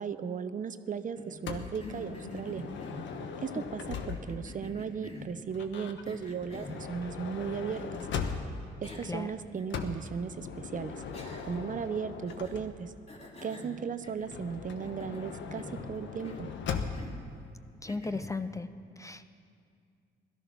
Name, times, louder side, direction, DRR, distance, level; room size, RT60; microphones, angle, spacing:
voice 1, 0.0-2.6 3.4-8.0 8.8-11.0 11.4-12.9 13.4-16.5, right 6 dB, 40° right, 12 dB, 0.7 m, -36 dB
Cough, 1.1-3.3 4.1-5.4 6.0-6.8 8.2-8.3 8.8-9.2 9.6-9.7 11.1-11.7 12.3-12.7 13.1-14.5 14.8-15.9 16.2-16.5 16.9-17.3 17.9-18.4, left 1 dB, 30° left, 2.9 m, -46 dB
Motor vehicle (road) / Sliding door, 1.5-4.5 5.5-8.8 9.7-13.0 14.2-17.2, left 6 dB, 70° left, 1.2 m, -39 dB
voice 2, 17.8-18.7 19.0-19.3, left 3 dB, 15° left, 11 dB, 0.5 m, -36 dB
17.0 x 13.0 x 5.9 m, 2.3 s
cardioid pair, 90°, 20 cm